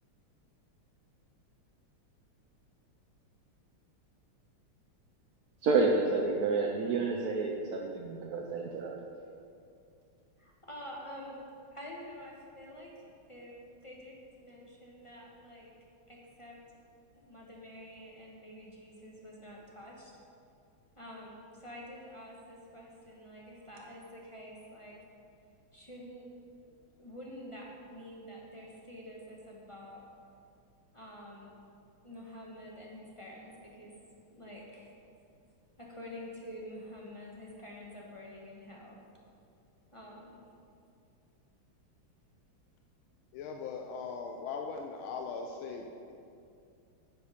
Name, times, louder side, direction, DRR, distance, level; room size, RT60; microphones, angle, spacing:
voice 1, 5.6-8.9, right 3 dB, 60° right, 0 dB, 1.0 m, -29 dB
voice 2, 10.4-11.4 11.7-12.9 13.3-16.6 17.3-20.2 21.0-25.0 25.7-26.3 27.0-30.1 30.9-31.5 32.0-33.9 34.3-34.9 35.8-39.0 39.9-40.4, equal, 20° left, -3 dB, 1.1 m, -48 dB
voice 3, 43.3-46.1, left 5 dB, 85° left, 3 dB, 1.5 m, -40 dB
10.0 x 8.1 x 5.1 m, 2.5 s
omnidirectional pair, 2.2 m